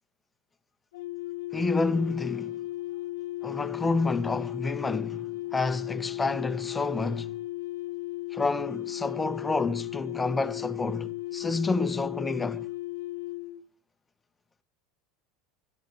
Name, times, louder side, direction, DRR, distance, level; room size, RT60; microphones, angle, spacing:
sound 1, 0.9-13.6, left 17 dB, 90° left, 0.9 m, -36 dB
voice 1, 1.5-2.6 3.4-7.4 8.3-12.7, left 3 dB, 15° left, 0.7 m, -29 dB
13.0 x 12.0 x 4.6 m
supercardioid pair, 115°, 0 cm